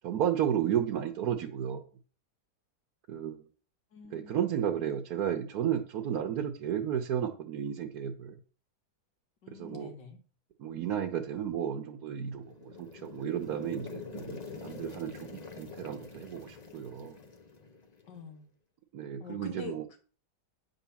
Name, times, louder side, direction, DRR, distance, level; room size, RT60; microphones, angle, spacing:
voice 1, 0.0-1.8 3.1-3.4 4.1-8.4 9.5-9.9 10.6-17.2 18.9-19.8, right 9 dB, 65° right, 3 dB, 1.3 m, -33 dB
voice 2, 3.9-4.4 9.4-10.2 18.0-18.5 19.2-20.0, left 5 dB, 85° left, 5 dB, 2.3 m, -45 dB
sound 1, 12.2-18.2, left 4 dB, 30° left, 0.8 m, -46 dB
9.7 x 4.0 x 7.0 m, 0.40 s
omnidirectional pair, 1.8 m